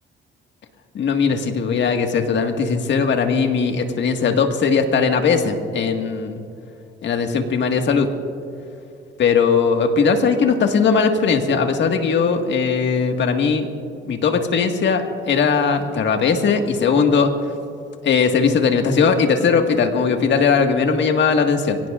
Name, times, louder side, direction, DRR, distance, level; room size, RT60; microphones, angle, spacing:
voice 1, 0.9-6.4 7.0-8.1 9.2-13.7 14.0-17.3 18.0-21.8, left 5 dB, 65° left, 4 dB, 1.7 m, -19 dB
25.0 x 17.5 x 2.5 m, 2.5 s
cardioid pair, 90°, 20 cm